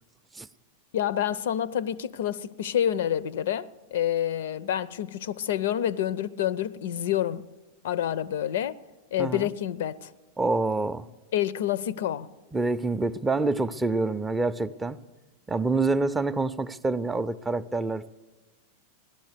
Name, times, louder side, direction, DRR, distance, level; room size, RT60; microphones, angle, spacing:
voice 1, 0.9-7.4 7.8-8.8 9.1-10.1 11.3-12.3, left 10 dB, 60° left, 0.4 m, -28 dB
voice 2, 9.2-9.5 10.4-11.1 12.5-15.0 15.5-18.1, right 3 dB, 10° right, 0.4 m, -27 dB
17.0 x 12.0 x 6.6 m
figure-of-eight pair, 90°, 0 cm